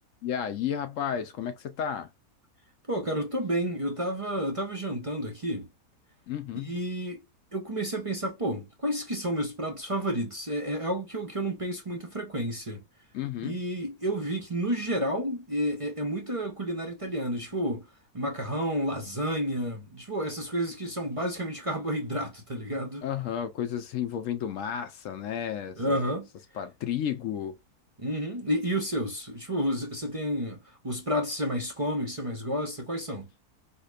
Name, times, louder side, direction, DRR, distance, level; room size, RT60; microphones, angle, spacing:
voice 1, 0.2-2.1 6.3-6.7 13.1-13.6 23.0-26.1 26.5-27.6, left 9 dB, 70° left, 0.8 m, -32 dB
voice 2, 2.9-5.7 6.5-7.2 7.5-12.8 13.4-17.9 18.1-23.1 25.8-26.3 28.0-33.3, equal, 35° right, 0.5 m, -30 dB
4.9 x 2.2 x 2.3 m
omnidirectional pair, 1.6 m